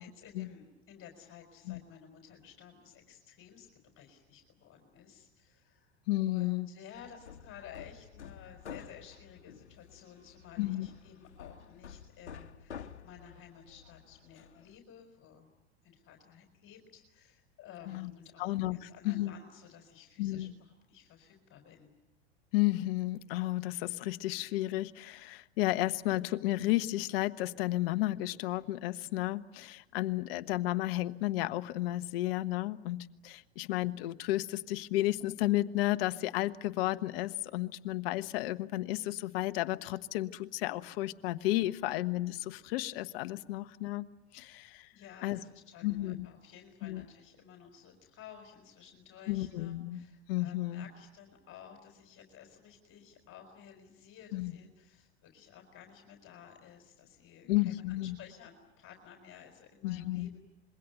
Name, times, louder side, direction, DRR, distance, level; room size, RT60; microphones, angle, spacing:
voice 1, 0.0-6.0 6.3-15.5 15.8-21.9 44.9-60.4, left 8 dB, 40° left, 4 dB, 4.5 m, -54 dB
voice 2, 6.1-6.7 10.6-10.9 17.9-18.1 18.4-19.3 20.2-20.5 22.5-44.1 44.3-44.9 45.2-45.4 45.8-46.3 46.8-47.0 49.3-50.0 50.3-50.8 54.3-54.5 57.5-58.1 59.8-60.3, left 17 dB, 60° left, 12 dB, 1.3 m, -32 dB
Hammer, 6.9-14.8, left 7 dB, 85° left, 1.4 m, -50 dB
26.5 x 22.5 x 9.3 m, 0.96 s
hypercardioid pair, 90°, 33 cm